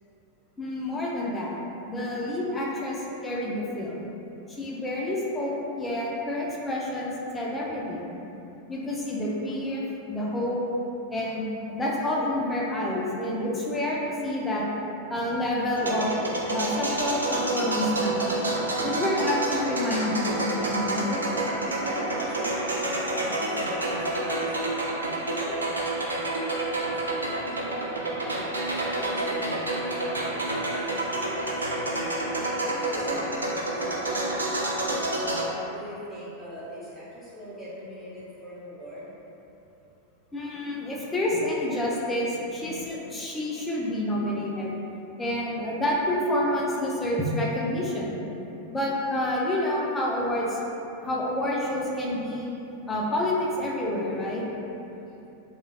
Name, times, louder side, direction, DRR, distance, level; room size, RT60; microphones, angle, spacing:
voice 1, 0.6-1.6 1.9-3.9 4.5-8.0 8.7-9.8 10.1-10.6 11.1-14.7 15.1-16.1 16.5-18.2 18.8-21.1 40.3-44.8 45.2-48.2 48.7-50.6 51.0-52.5 52.9-54.4, left 1 dB, 15° left, -4 dB, 0.5 m, -28 dB
voice 2, 15.1-15.6 15.9-16.1 21.8-22.7 23.1-25.0 25.3-28.3 28.7-32.1 32.5-35.0 35.7-39.1 41.3-41.4 42.6-42.8 54.9-55.2, equal, 10° right, -10 dB, 0.9 m, -43 dB
sound 1, 15.8-35.5, right 1 dB, 80° right, 0.3 m, -28 dB
3.1 x 2.3 x 2.3 m, 2.9 s
figure-of-eight pair, 90°, 0 cm